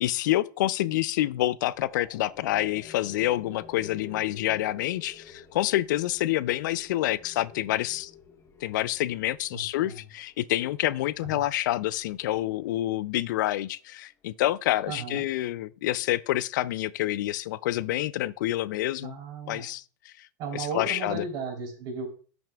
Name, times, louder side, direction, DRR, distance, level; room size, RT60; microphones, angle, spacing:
voice 1, 0.0-8.1 8.6-19.1 19.5-20.3 20.5-21.2, left 15 dB, 75° left, 0.4 m, -28 dB
sound 1, 1.7-13.4, left 6 dB, 25° left, 1.0 m, -50 dB
voice 2, 9.5-10.0 11.2-11.4 14.9-15.2 19.0-19.7 20.4-22.1, right 4 dB, 45° right, 3.3 m, -35 dB
12.0 x 6.1 x 2.3 m
supercardioid pair, 135°, 10 cm